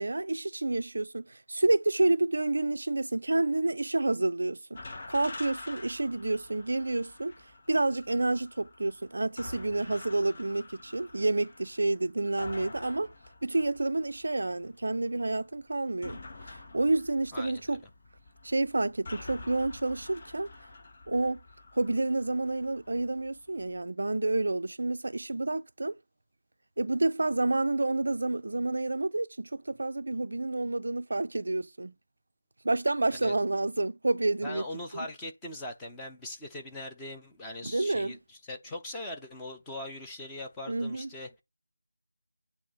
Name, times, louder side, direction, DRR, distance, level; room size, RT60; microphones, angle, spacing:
voice 1, 0.0-4.8 5.1-7.3 7.7-13.1 13.4-16.2 16.5-17.8 18.4-20.5 21.1-21.4 21.7-26.0 26.8-31.9 32.6-34.6 34.9-35.1 37.6-38.1 40.7-41.1, right 2 dB, 55° right, 0.4 m, -29 dB
sound 1, 4.7-23.8, left 2 dB, 35° left, 0.9 m, -48 dB
voice 2, 17.3-17.8 33.2-33.3 34.4-41.4, left 1 dB, 5° left, 0.7 m, -41 dB
8.5 x 2.9 x 5.4 m
figure-of-eight pair, 170°, 0 cm